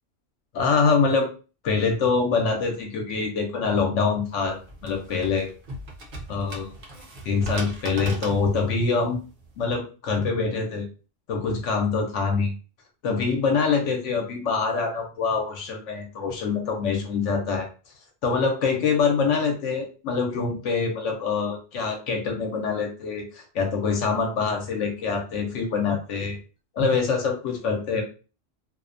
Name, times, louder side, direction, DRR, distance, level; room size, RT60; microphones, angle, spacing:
voice 1, 0.5-1.3 1.6-5.5 6.3-6.7 7.2-9.2 9.6-10.8 11.3-12.5 13.0-17.7 18.2-26.4 26.8-28.0, left 5 dB, 75° left, 2 dB, 0.9 m, -25 dB
sound 1, 4.2-9.6, right 2 dB, 50° right, 0.8 m, -39 dB
2.5 x 2.1 x 2.4 m, 0.35 s
omnidirectional pair, 1.3 m